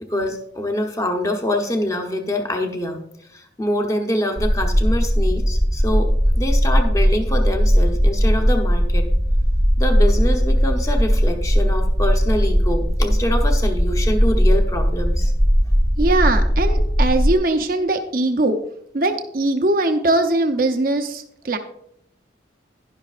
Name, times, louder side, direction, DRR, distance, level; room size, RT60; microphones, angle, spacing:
voice 1, 0.0-3.0 3.3-9.1 9.8-15.3, left 1 dB, 15° left, 4 dB, 0.9 m, -25 dB
sound 1, 4.4-17.3, equal, ahead, 0.6 m, -18 dB
voice 2, 16.0-18.6 18.9-21.6, right 2 dB, 50° right, 6 dB, 0.7 m, -20 dB
11.0 x 11.0 x 2.4 m, 0.73 s
head